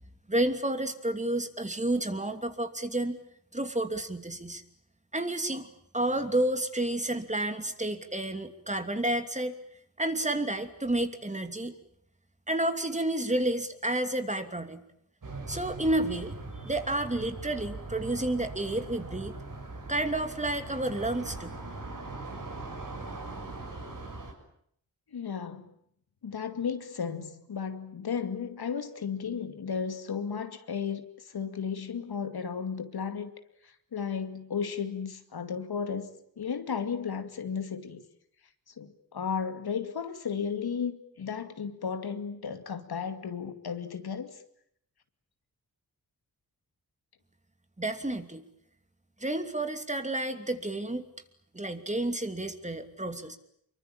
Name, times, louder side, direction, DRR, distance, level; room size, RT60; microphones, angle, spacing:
voice 1, 0.3-3.2 3.5-4.6 5.1-9.5 10.0-11.7 12.5-14.8 15.5-16.3 16.6-19.3 19.9-21.5 47.8-48.4 49.2-51.0 51.5-53.4, right 1 dB, 20° right, 2.9 m, -30 dB
sound 1, 15.2-24.3, right 2 dB, 60° right, 6.9 m, -41 dB
voice 2, 25.1-25.7 26.2-33.3 33.9-36.1 36.4-38.0 38.8-44.4, left 6 dB, 85° left, 2.4 m, -34 dB
25.5 x 23.5 x 9.0 m
cardioid pair, 70°, 37 cm